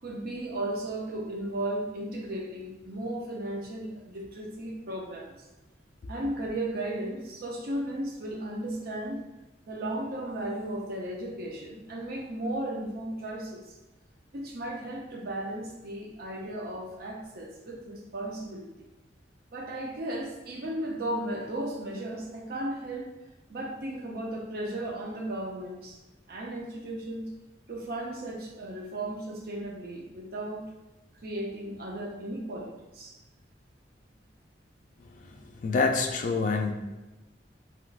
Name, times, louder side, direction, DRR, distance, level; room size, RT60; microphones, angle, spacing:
voice 1, 0.0-5.3 6.1-9.2 9.7-13.7 14.3-18.7 19.5-23.1 23.5-26.0 26.3-27.3 27.7-30.6 31.2-33.2 35.2-35.3, right 1 dB, 55° right, 0 dB, 0.6 m, -35 dB
voice 2, 35.6-36.7, left 4 dB, 45° left, 4 dB, 0.3 m, -26 dB
3.2 x 3.0 x 2.3 m, 1.1 s
head